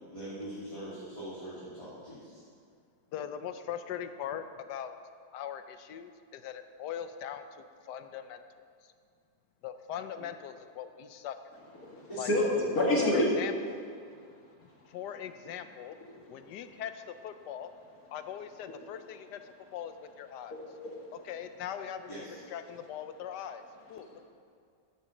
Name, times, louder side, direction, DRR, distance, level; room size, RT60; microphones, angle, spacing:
voice 1, 0.1-2.4 12.1-12.3 22.1-22.4, right 1 dB, 20° left, -11 dB, 2.5 m, -42 dB
voice 2, 3.1-4.9 5.3-8.4 8.8-8.9 9.6-11.6 12.2-12.3 13.0-13.8 14.9-16.0 16.3-17.7 18.1-20.6 21.1-22.1 22.5-23.6 23.9-24.1, left 9 dB, 85° left, 9 dB, 1.2 m, -40 dB
voice 3, 11.8-13.3 20.5-20.9 24.0-24.1, left 1 dB, 60° left, -3 dB, 2.3 m, -28 dB
11.5 x 7.0 x 6.5 m, 2.3 s
omnidirectional pair, 1.8 m